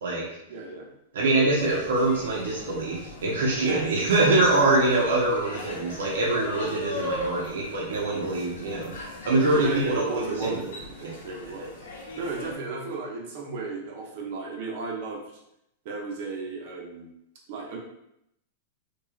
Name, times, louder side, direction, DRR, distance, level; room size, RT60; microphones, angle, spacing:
voice 1, 0.5-0.9 3.6-4.4 6.9-7.2 9.5-11.7 12.1-15.2 15.8-17.1 17.5-17.8, right 3 dB, 45° right, -1 dB, 0.6 m, -34 dB
voice 2, 1.1-8.9 9.2-10.6, right 2 dB, 85° right, -4 dB, 0.7 m, -24 dB
sound 1, 1.5-12.5, left 2 dB, 70° left, 0.8 m, -39 dB
3.0 x 2.2 x 2.3 m, 0.81 s
supercardioid pair, 175°, 0 cm